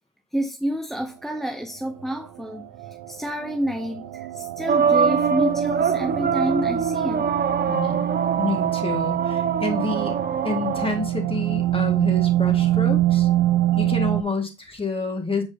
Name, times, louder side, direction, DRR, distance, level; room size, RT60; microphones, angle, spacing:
voice 1, 0.3-2.6 3.1-7.3, equal, ahead, 0.5 m, -28 dB
sound 1, 1.9-14.2, right 14 dB, 85° right, 0.7 m, -25 dB
sound 2, 4.7-11.0, right 6 dB, 30° right, 0.7 m, -23 dB
voice 2, 7.7-8.1 8.4-10.2 10.4-13.3 13.8-15.4, left 2 dB, 20° left, 1.7 m, -28 dB
7.3 x 4.8 x 2.7 m
cardioid pair, 90°, 30 cm